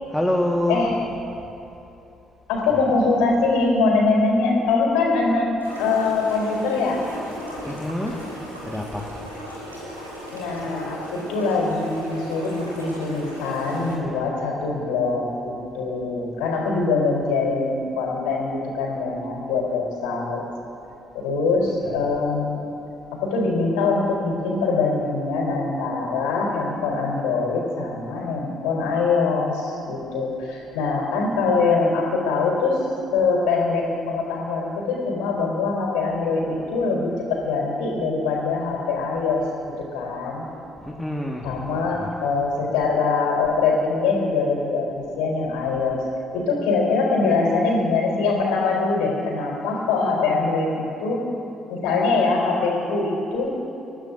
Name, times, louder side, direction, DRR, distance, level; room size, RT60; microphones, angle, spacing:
voice 1, 0.1-1.0 2.7-2.8 7.6-8.2 8.6-9.1 21.8-21.9 40.8-42.1, left 1 dB, 5° left, -1 dB, 1.7 m, -26 dB
voice 2, 2.5-5.5 5.8-7.0 10.3-20.4 21.2-22.6 23.2-32.8 33.1-39.4 39.9-40.4 41.4-44.9 45.2-46.0 46.3-51.2 51.7-53.5, left 4 dB, 65° left, -2 dB, 3.8 m, -23 dB
sound 1, 5.6-13.9, equal, 85° right, 2.3 m, -36 dB
28.0 x 14.0 x 2.7 m, 2.9 s
figure-of-eight pair, 45°, 0 cm